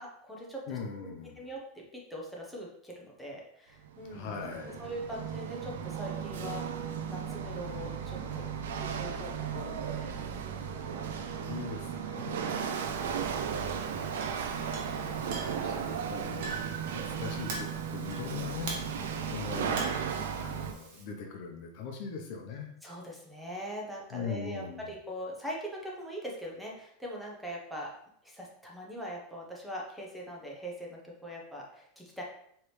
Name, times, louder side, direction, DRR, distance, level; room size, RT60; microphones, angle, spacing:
voice 1, 0.0-1.1 1.4-9.7 10.0-11.6 22.8-27.9 28.2-32.2, equal, ahead, -3 dB, 0.9 m, -42 dB
voice 2, 0.7-1.4 4.1-4.8 9.5-10.1 10.9-12.9 13.6-14.1 15.0-16.6 16.9-18.7 19.3-20.1 20.4-22.7 24.1-24.9, left 5 dB, 55° left, 2 dB, 0.8 m, -41 dB
Chatter / Hiss / Rattle, 3.8-20.7, right 7 dB, 90° right, 0.5 m, -35 dB
Chink clink, 12.7-21.0, right 2 dB, 60° right, 1.2 m, -45 dB
4.7 x 3.2 x 3.2 m, 0.69 s
supercardioid pair, 145°, 0 cm